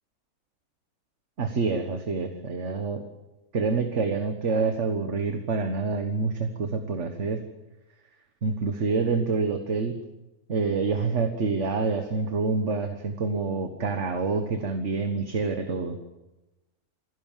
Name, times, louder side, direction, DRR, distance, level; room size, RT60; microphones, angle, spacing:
voice 1, 1.4-3.0 3.5-7.4 8.4-10.0 10.5-16.0, right 4 dB, 55° right, 6 dB, 1.7 m, -27 dB
27.5 x 16.0 x 7.5 m, 1.0 s
omnidirectional pair, 1.5 m